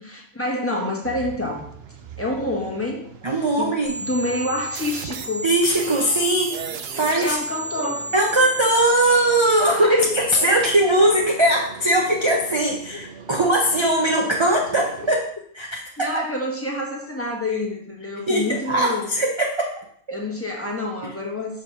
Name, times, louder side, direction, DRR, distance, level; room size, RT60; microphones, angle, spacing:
voice 1, 0.0-1.7 2.2-3.0 3.6-3.7 4.1-5.5 7.2-8.1 9.6-10.1 10.4-10.6 14.4-14.5 16.0-19.1 20.1-21.6, left 1 dB, 10° left, -2 dB, 1.2 m, -27 dB
sound 1, 1.0-15.2, right 7 dB, 60° right, 0.8 m, -41 dB
voice 2, 3.2-3.9 5.4-6.6 6.9-7.4 8.1-15.3 15.5-16.2 18.3-20.2 21.0-21.1, right 1 dB, 30° right, 0 dB, 0.6 m, -20 dB
sound 2, 3.9-8.9, right 3 dB, 85° right, 1.1 m, -33 dB
5.0 x 4.6 x 5.8 m, 0.63 s
omnidirectional pair, 1.3 m